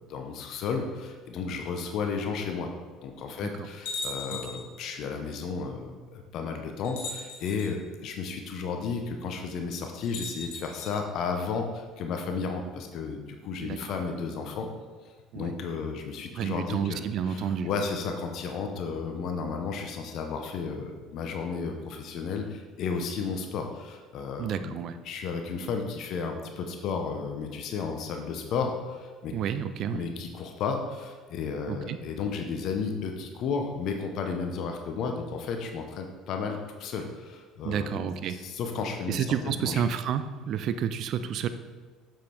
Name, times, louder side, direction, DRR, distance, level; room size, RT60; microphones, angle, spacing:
voice 1, 0.1-2.7 3.0-14.7 15.0-29.3 29.9-38.0 38.3-39.8, left 5 dB, 60° left, 4 dB, 0.9 m, -33 dB
sound 1, 3.9-4.7 5.9-6.0 6.8-7.7 10.0-10.9, left 3 dB, 80° left, 1.7 m, -37 dB
voice 2, 16.4-17.7 24.4-25.0 29.3-30.0 31.7-32.0 37.6-38.4 39.1-41.5, right 8 dB, 55° right, 11 dB, 0.5 m, -30 dB
7.5 x 7.3 x 3.5 m, 1.4 s
hypercardioid pair, 65°, 0 cm